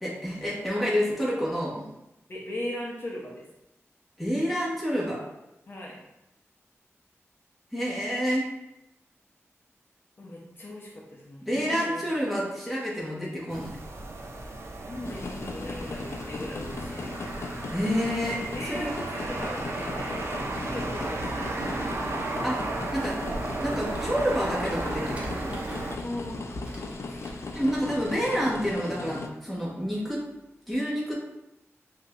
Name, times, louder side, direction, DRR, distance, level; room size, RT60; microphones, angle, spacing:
voice 1, 0.0-1.8 4.2-5.2 7.7-8.4 11.5-13.8 17.7-18.4 18.7-18.9 22.4-22.6 22.9-23.1 23.6-25.5 27.5-30.2 30.7-31.1, equal, ahead, -6 dB, 1.4 m, -28 dB
voice 2, 2.3-3.4 5.7-6.0 10.2-12.0 14.9-17.3 18.5-22.0 26.0-26.5 27.0-27.3, left 1 dB, 50° left, -4 dB, 0.8 m, -39 dB
sound 1, 13.5-26.0, right 2 dB, 65° right, 0.5 m, -34 dB
sound 2, 15.0-29.3, left 3 dB, 65° left, 0.4 m, -38 dB
Computer keyboard, 23.0-28.8, equal, 25° right, 1.3 m, -43 dB
6.5 x 2.7 x 2.5 m, 0.89 s
wide cardioid pair, 100°, 5 cm